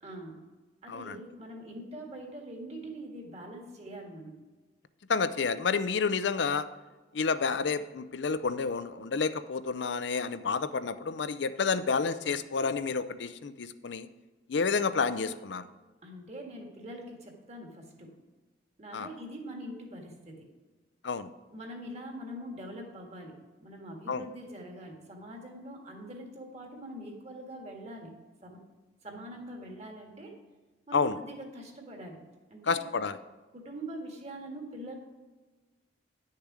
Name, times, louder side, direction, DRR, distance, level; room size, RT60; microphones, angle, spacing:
voice 1, 0.0-0.5 0.8-4.4 16.0-18.2 18.8-20.5 21.5-28.7 29.0-30.4 30.9-32.2 32.5-33.0 33.5-35.0, right 1 dB, 35° right, 1 dB, 1.7 m, -43 dB
voice 2, 5.1-6.7 7.1-14.1 14.5-15.6 18.9-19.1 21.0-21.3 24.1-24.2 30.9-31.1 32.7-33.2, left 5 dB, 70° left, 13 dB, 0.5 m, -30 dB
10.5 x 6.6 x 4.9 m, 1.3 s
head